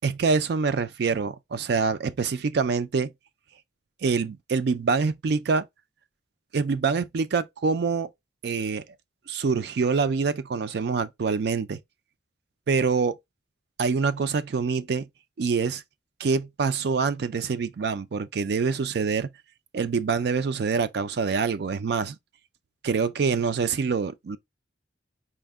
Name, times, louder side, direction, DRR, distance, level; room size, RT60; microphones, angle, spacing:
voice 1, 0.0-3.1 4.0-5.7 6.5-8.1 8.4-8.8 9.3-11.8 12.7-13.2 13.8-15.1 15.4-15.8 16.2-19.3 19.7-22.2 22.8-24.4, right 5 dB, 60° right, 0.4 m, -25 dB
4.4 x 2.1 x 3.4 m
head